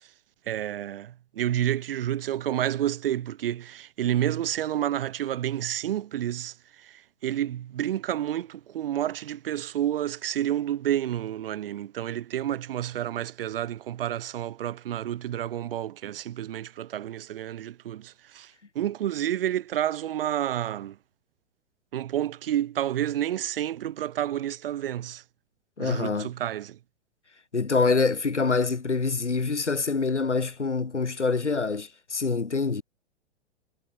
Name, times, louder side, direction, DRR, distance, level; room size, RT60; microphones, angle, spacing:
voice 1, 0.5-21.0 21.9-25.2 25.8-26.8, right 11 dB, 55° right, 1.2 m, -30 dB
voice 2, 25.8-26.3 27.5-32.8, left 4 dB, 90° left, 0.8 m, -25 dB
figure-of-eight pair, 100°, 34 cm